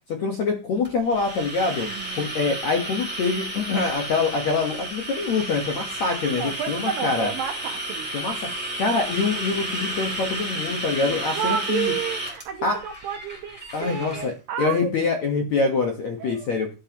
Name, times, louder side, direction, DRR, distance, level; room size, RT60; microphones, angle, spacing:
voice 1, 0.2-1.9 2.2-7.3 8.1-8.4 8.8-11.9 12.6-12.8 13.7-16.7, left 4 dB, 75° left, 3 dB, 1.6 m, -25 dB
sound 1, 0.8-14.3, right 1 dB, 5° right, 2.9 m, -32 dB
voice 2, 1.7-2.3 6.3-8.1 11.0-14.9 16.2-16.5, right 8 dB, 80° right, 5 dB, 2.0 m, -31 dB
12.5 x 11.5 x 3.0 m, 0.31 s
omnidirectional pair, 5.3 m